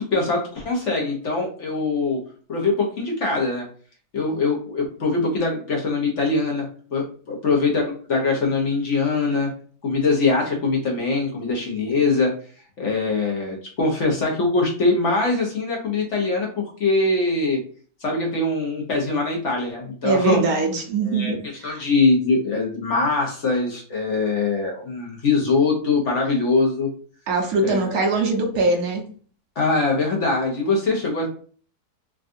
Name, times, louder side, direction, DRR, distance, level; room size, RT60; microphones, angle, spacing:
voice 1, 0.0-2.2 2.5-3.7 4.1-9.5 9.8-12.3 12.8-17.6 18.0-20.4 21.0-26.9 27.6-28.0 29.6-31.3, left 3 dB, 55° left, 1.0 m, -22 dB
voice 2, 20.0-21.8 27.3-29.1, right 3 dB, 70° right, 1.1 m, -22 dB
3.5 x 2.3 x 2.5 m
omnidirectional pair, 1.7 m